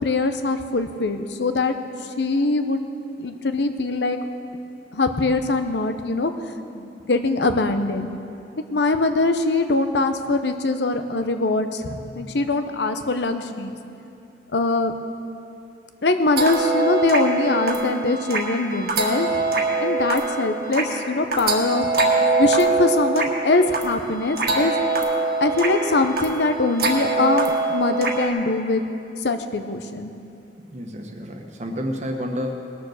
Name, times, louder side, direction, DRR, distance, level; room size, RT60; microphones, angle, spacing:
voice 1, 0.0-1.8 2.2-2.8 3.2-4.2 4.9-6.3 6.7-8.1 8.7-13.8 14.5-14.9 16.0-19.3 19.8-21.9 22.4-24.7 25.4-28.8 29.2-30.1, left 2 dB, 75° left, 8 dB, 0.8 m, -22 dB
sound 1, 16.4-28.3, right 3 dB, 60° right, 1.6 m, -24 dB
voice 2, 30.7-32.5, equal, 40° right, 3 dB, 1.3 m, -30 dB
19.5 x 7.0 x 6.5 m, 2.6 s
head